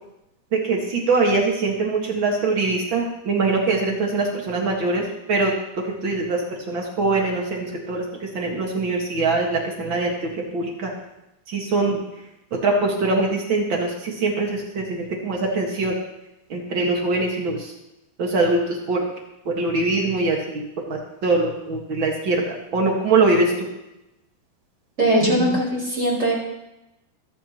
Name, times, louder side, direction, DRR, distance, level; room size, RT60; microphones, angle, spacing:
voice 1, 0.5-5.5 6.0-10.9 11.5-12.0 12.6-15.9 16.5-17.7 18.2-19.0 19.4-23.7 25.1-25.5, right 3 dB, 80° right, 0 dB, 1.0 m, -23 dB
voice 2, 25.0-26.3, right 1 dB, 15° right, -4 dB, 5.2 m, -20 dB
27.5 x 10.0 x 3.0 m, 0.92 s
omnidirectional pair, 5.2 m